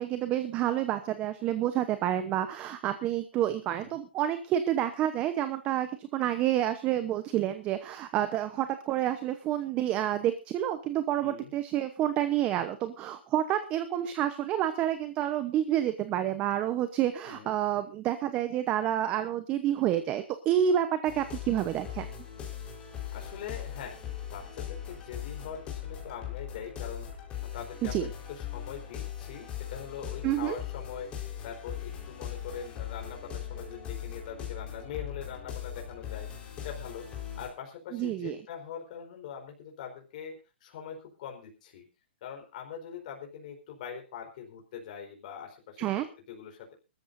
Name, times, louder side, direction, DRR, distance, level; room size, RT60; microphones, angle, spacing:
voice 1, 0.0-22.1 27.8-28.1 30.2-30.6 37.9-38.4 45.8-46.1, right 11 dB, 20° right, 10 dB, 0.9 m, -29 dB
voice 2, 3.7-4.0 11.2-11.5 17.2-17.6 23.1-24.0 24.3-27.3 27.5-36.3 36.6-41.8 42.2-46.7, left 7 dB, 45° left, 2 dB, 4.3 m, -43 dB
sound 1, 21.0-37.5, left 10 dB, 20° left, 4.4 m, -40 dB
24.0 x 13.5 x 2.7 m, 0.30 s
hypercardioid pair, 155°, 6 cm